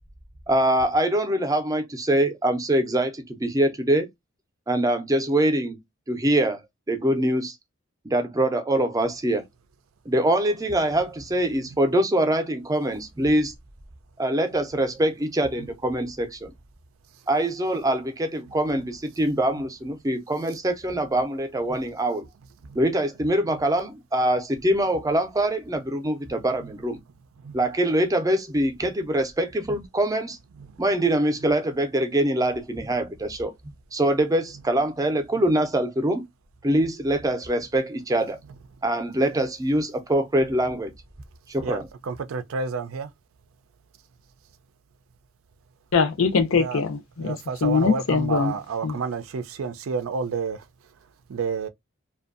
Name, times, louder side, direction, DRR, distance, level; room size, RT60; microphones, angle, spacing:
voice 1, 0.5-4.1 4.7-5.8 6.1-6.6 6.9-7.5 8.0-9.4 10.1-13.5 14.2-16.5 17.3-22.3 22.7-27.0 27.5-30.4 30.8-33.5 33.9-36.2 36.6-38.4 38.8-40.9 41.5-41.9, right 1 dB, 15° right, 0.5 m, -24 dB
voice 2, 42.1-43.1 46.6-46.8 47.2-50.6 51.3-51.7, right 5 dB, 75° right, 0.4 m, -29 dB
voice 3, 45.9-47.4 47.6-48.5 48.8-49.0, left 5 dB, 75° left, 0.6 m, -22 dB
2.6 x 2.3 x 2.4 m
head